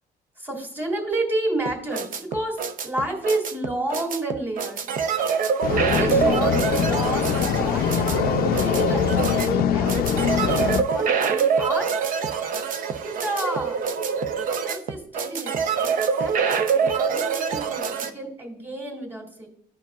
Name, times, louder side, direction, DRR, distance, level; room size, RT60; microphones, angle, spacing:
voice 1, 0.4-4.9 5.7-8.3 8.5-9.0 9.3-10.4 10.9-11.9 13.0-13.8 14.6-19.5, right 1 dB, 10° right, 1 dB, 2.3 m, -30 dB
sound 1, 1.6-18.1, right 6 dB, 55° right, 0.7 m, -25 dB
sound 2, 5.6-10.8, left 8 dB, 65° left, 0.4 m, -23 dB
12.0 x 4.6 x 2.3 m, 0.66 s
cardioid pair, 110°, 17 cm